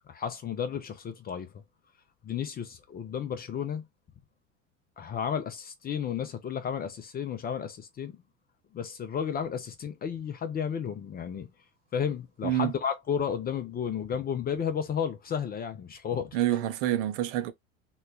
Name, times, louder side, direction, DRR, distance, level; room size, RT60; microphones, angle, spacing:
voice 1, 0.1-1.5 2.2-3.8 5.0-8.1 8.7-11.5 11.9-16.4, left 7 dB, 25° left, 0.5 m, -32 dB
voice 2, 12.4-12.7 16.3-17.5, right 12 dB, 60° right, 0.8 m, -27 dB
3.0 x 2.1 x 2.3 m
hypercardioid pair, 80°, 40 cm